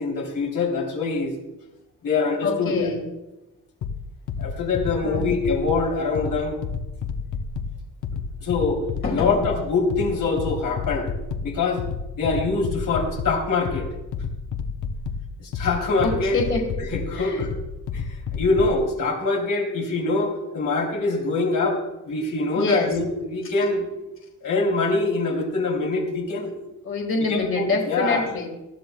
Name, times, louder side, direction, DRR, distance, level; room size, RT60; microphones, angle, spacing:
voice 1, 0.0-1.3 2.0-2.9 4.4-6.6 8.4-8.8 9.1-11.1 11.4-11.8 12.2-13.9 15.4-16.4 16.9-17.5 17.9-21.8 22.0-23.9 24.4-26.5 27.3-28.2, left 3 dB, 90° left, -1 dB, 3.2 m, -24 dB
voice 2, 2.4-3.0 5.0-5.3 9.0-9.4 16.0-16.6 17.1-17.5 22.6-23.0 26.8-28.5, left 3 dB, 40° left, 1 dB, 1.8 m, -25 dB
sound 1, 3.8-18.8, left 5 dB, 70° left, 1.0 m, -31 dB
19.5 x 13.5 x 2.3 m, 1.0 s
wide cardioid pair, 155°, 31 cm